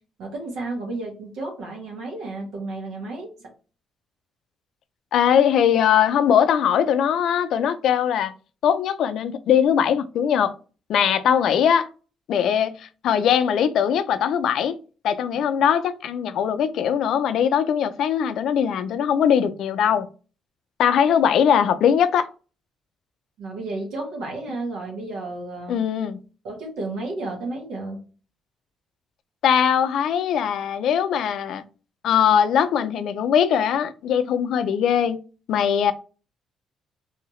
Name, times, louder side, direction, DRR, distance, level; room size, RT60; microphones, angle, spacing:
voice 1, 0.2-3.5 23.4-25.8 26.4-28.0, right 2 dB, 90° right, 1.6 m, -32 dB
voice 2, 5.1-8.3 8.6-10.5 10.9-11.9 12.3-14.8 15.0-20.1 20.8-22.3 25.7-26.2 29.4-31.6 32.0-35.2 35.5-35.9, left 8 dB, 75° left, 0.4 m, -20 dB
3.2 x 2.8 x 3.0 m
cardioid pair, 90°, 0 cm